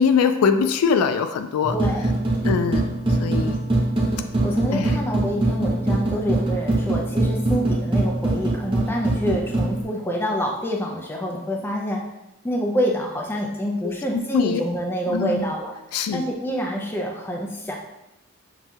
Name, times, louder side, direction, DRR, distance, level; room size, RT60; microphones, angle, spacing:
voice 1, 0.0-1.8 2.4-3.6 4.7-5.0 13.8-14.6 15.1-15.5 15.9-16.2, left 6 dB, 85° left, 9 dB, 0.3 m, -22 dB
sound 1, 1.6-9.8, right 2 dB, 25° right, 0.7 m, -23 dB
voice 2, 1.7-2.1 4.4-12.0 12.4-15.7 16.1-17.8, equal, 10° left, -1 dB, 0.4 m, -27 dB
5.8 x 2.7 x 2.3 m, 0.91 s
head